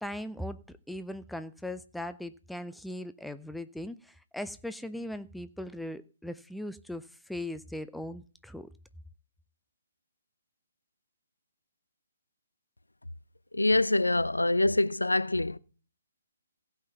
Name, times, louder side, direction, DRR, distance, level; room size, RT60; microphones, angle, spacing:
voice 1, 0.0-0.6 0.9-4.0 4.3-7.0 7.3-8.7, left 1 dB, ahead, 0.5 m, -39 dB
voice 2, 13.5-15.6, left 2 dB, 85° left, 0.6 m, -25 dB
15.5 x 5.7 x 6.9 m
figure-of-eight pair, 135°, 0 cm